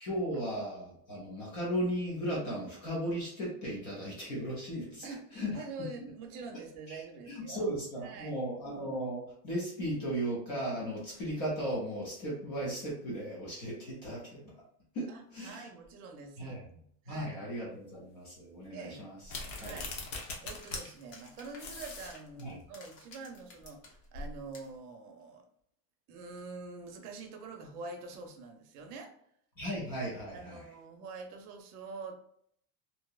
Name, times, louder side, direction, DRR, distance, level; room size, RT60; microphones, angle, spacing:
voice 1, 0.0-5.0 5.3-5.6 6.0-6.1 6.9-7.0 7.3-14.4 14.9-15.6 16.4-16.6 17.1-19.1 19.6-19.8 22.4-22.5 29.6-30.6, equal, 30° left, -4 dB, 0.4 m, -36 dB
voice 2, 5.0-7.7 8.0-8.4 15.1-16.7 17.0-17.4 18.7-19.0 19.6-19.9 20.4-25.5 26.1-29.1 30.3-32.1, right 3 dB, 65° right, 4 dB, 0.7 m, -45 dB
sound 1, 19.2-20.8 21.1-21.2 21.6-22.1, left 3 dB, 60° left, 0.8 m, -40 dB
sound 2, 19.5-24.8, left 1 dB, 85° left, 1.0 m, -51 dB
2.7 x 2.0 x 2.2 m, 0.67 s
supercardioid pair, 180°, 48 cm